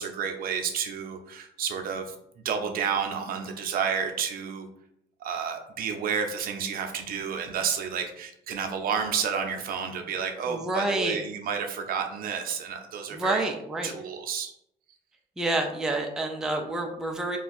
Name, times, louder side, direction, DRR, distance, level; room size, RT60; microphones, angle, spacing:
voice 1, 0.0-2.1 2.4-4.7 5.2-13.5 13.8-14.5, right 6 dB, 60° right, 4 dB, 0.6 m, -30 dB
voice 2, 10.5-11.2 13.1-13.9 15.4-17.4, right 2 dB, 5° right, 2 dB, 0.4 m, -28 dB
2.6 x 2.3 x 3.8 m, 0.75 s
cardioid pair, 110°, 17 cm